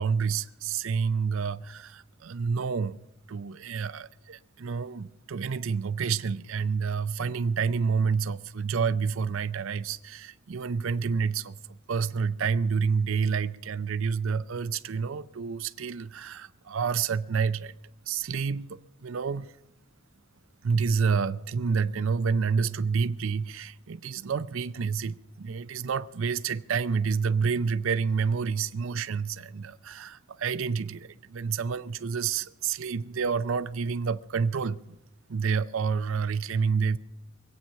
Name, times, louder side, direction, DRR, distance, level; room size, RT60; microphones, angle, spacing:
voice 1, 0.0-3.0 3.3-11.6 11.9-17.8 18.1-19.5 20.6-34.8 35.3-37.0, right 5 dB, 75° right, 0.5 m, -29 dB
22.0 x 8.9 x 5.6 m
head